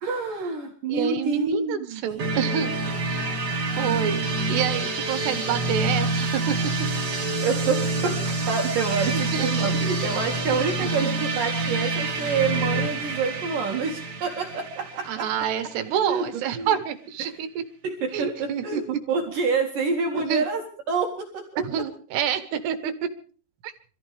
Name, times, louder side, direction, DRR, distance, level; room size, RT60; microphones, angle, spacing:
voice 1, 0.0-2.1 7.4-15.3 16.1-16.7 17.2-17.3 17.8-21.8, right 4 dB, 60° right, 1 dB, 3.3 m, -27 dB
voice 2, 0.9-2.7 3.0-3.3 3.8-6.6 9.1-9.7 10.8-10.9 15.1-17.6 18.1-18.8 20.1-20.4 21.6-23.1 23.6-23.7, right 9 dB, 80° right, 10 dB, 3.4 m, -28 dB
sound 1, 2.2-15.9, right 2 dB, 40° right, 1.5 m, -27 dB
26.5 x 14.5 x 3.4 m, 0.41 s
omnidirectional pair, 4.7 m